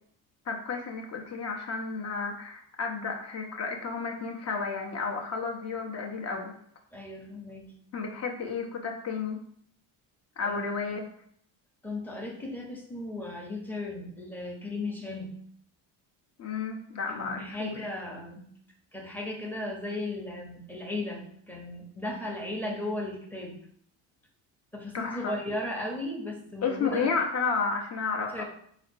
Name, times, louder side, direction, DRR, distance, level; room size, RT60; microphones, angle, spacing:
voice 1, 0.5-6.5 7.9-9.4 10.4-11.1 16.4-17.9 24.9-25.4 26.6-28.4, left 5 dB, 30° left, 1 dB, 0.9 m, -32 dB
voice 2, 6.9-7.7 10.4-10.9 11.8-15.4 17.2-18.5 18.9-23.6 24.7-27.1 28.3-28.4, left 1 dB, 5° left, 0 dB, 0.9 m, -36 dB
4.1 x 2.0 x 4.2 m, 0.65 s
supercardioid pair, 80°, 49 cm